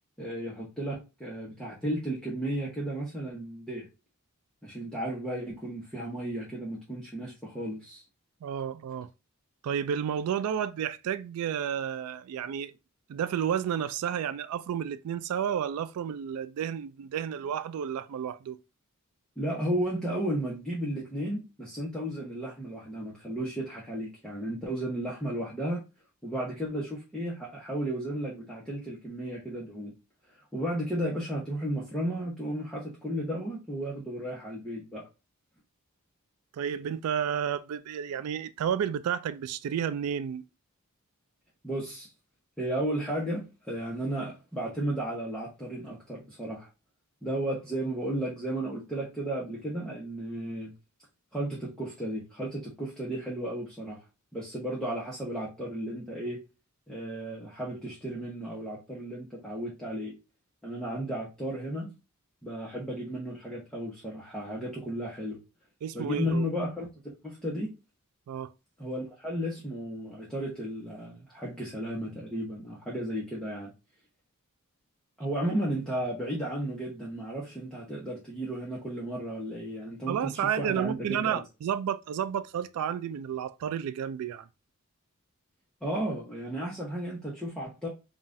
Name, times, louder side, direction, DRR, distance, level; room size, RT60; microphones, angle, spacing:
voice 1, 0.2-3.8 4.6-8.0 19.4-25.8 26.2-29.9 30.5-35.0 41.6-42.1 42.6-46.7 47.2-50.7 51.3-54.0 54.3-56.4 56.9-60.1 60.6-61.9 62.4-65.4 65.9-66.9 67.2-67.7 68.8-73.7 75.2-81.4 85.8-87.9, right 1 dB, 5° left, 0.9 m, -34 dB
voice 2, 8.4-9.1 9.6-12.7 13.1-18.6 36.5-40.4 65.8-66.5 68.3-68.5 80.1-84.5, right 8 dB, 80° right, 0.3 m, -31 dB
5.5 x 2.4 x 2.5 m
head